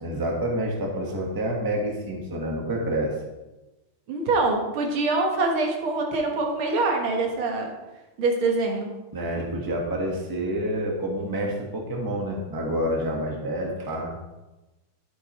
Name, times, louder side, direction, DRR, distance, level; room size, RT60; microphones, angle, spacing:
voice 1, 0.0-3.1 9.1-14.1, right 1 dB, 15° right, -1 dB, 1.1 m, -28 dB
voice 2, 4.1-7.7 8.2-8.9, right 3 dB, 80° right, 1 dB, 2.2 m, -24 dB
11.0 x 8.1 x 3.1 m, 1.1 s
omnidirectional pair, 2.3 m